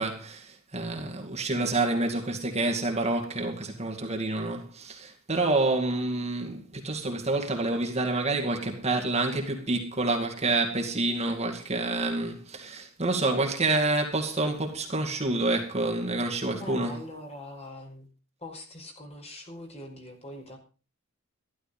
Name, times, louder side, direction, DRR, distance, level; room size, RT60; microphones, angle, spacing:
voice 1, 0.0-17.0, right 2 dB, 30° right, 2.4 m, -28 dB
voice 2, 16.5-18.1 18.4-20.6, left 1 dB, 30° left, 5.1 m, -42 dB
14.0 x 13.0 x 5.3 m
head